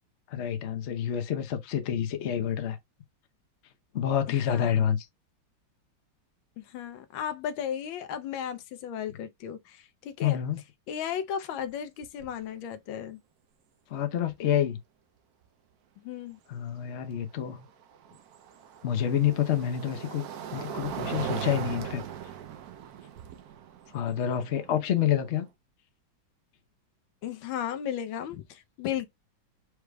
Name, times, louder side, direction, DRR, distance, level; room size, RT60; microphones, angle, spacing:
voice 1, 0.3-2.8 3.9-5.0 10.2-10.6 13.9-14.8 16.5-17.7 18.8-20.2 20.5-22.0 23.9-25.5, left 10 dB, 55° left, 0.8 m, -28 dB
voice 2, 4.3-4.9 6.6-10.4 10.9-13.2 16.0-16.4 27.2-29.1, left 9 dB, 85° left, 1.5 m, -35 dB
sound 1, 11.6-11.7 12.0-12.4 14.3-14.4 17.4-25.5, right 8 dB, 65° right, 1.0 m, -39 dB
4.9 x 4.7 x 2.2 m
omnidirectional pair, 2.1 m